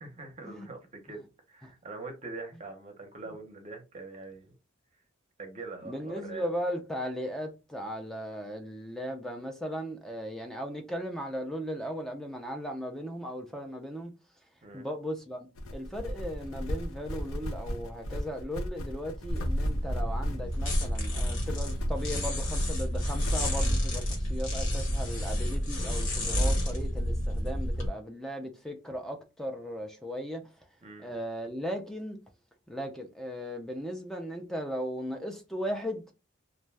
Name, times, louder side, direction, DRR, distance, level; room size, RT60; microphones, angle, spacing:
voice 1, 0.0-1.2 1.5-4.5 5.4-6.5 14.6-14.8 30.8-31.1, right 3 dB, 35° right, 0.7 m, -43 dB
voice 2, 5.9-14.1 14.7-30.4 31.0-32.2 32.7-36.1, equal, ahead, 0.3 m, -37 dB
sound 1, 15.5-23.7, equal, 85° left, 0.6 m, -36 dB
sound 2, 19.3-27.9, equal, 60° left, 1.2 m, -30 dB
2.5 x 2.2 x 3.2 m
head